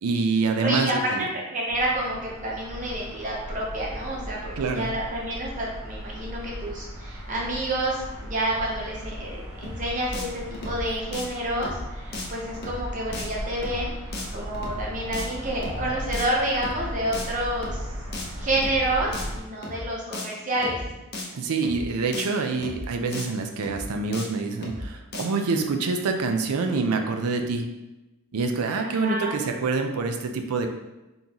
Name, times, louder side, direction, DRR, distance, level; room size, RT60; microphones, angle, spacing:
voice 1, 0.0-1.3 4.6-4.9 21.3-27.7 28.3-30.7, right 4 dB, 90° right, 5 dB, 0.5 m, -26 dB
voice 2, 0.6-13.9 14.3-17.9 18.4-20.8 28.8-29.3, right 1 dB, 35° right, -3 dB, 0.7 m, -29 dB
sound 1, 1.7-19.4, equal, 70° right, 0.9 m, -37 dB
sound 2, 9.6-9.8 10.1-10.3 10.5-10.8 11.1-11.2 11.6-11.8 12.1-12.3 12.5-12.8 13.1-13.3 13.6-13.8 14.1-14.3 14.5-14.8 15.1-15.3 15.6-15.8 16.1-16.2 16.5-16.8 17.1-17.3 17.6-17.8 18.1-18.3 18.5-18.8 19.1-19.3 19.6-19.8 20.1-20.3 20.5-20.8 21.1-21.3 21.6-21.8 22.1-22.3 22.5-22.8 23.1-23.2 23.6-23.8 24.1-24.3 24.5-24.8 25.1-25.2, left 2 dB, 45° left, 0.7 m, -35 dB
3.9 x 3.8 x 2.9 m, 1.0 s
head